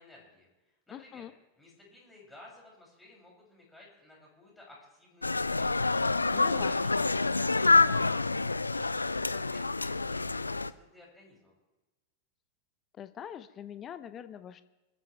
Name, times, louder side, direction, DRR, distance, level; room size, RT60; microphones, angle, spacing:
voice 1, 0.0-1.3 1.6-5.8 8.6-11.5, left 2 dB, 5° left, -4 dB, 7.5 m, -55 dB
voice 2, 0.9-1.3 6.3-6.7 13.0-14.6, left 9 dB, 25° left, 13 dB, 0.8 m, -43 dB
sound 1, 5.2-10.7, left 3 dB, 80° left, 0.4 m, -27 dB
25.5 x 14.0 x 3.5 m, 1.1 s
figure-of-eight pair, 90°, 0 cm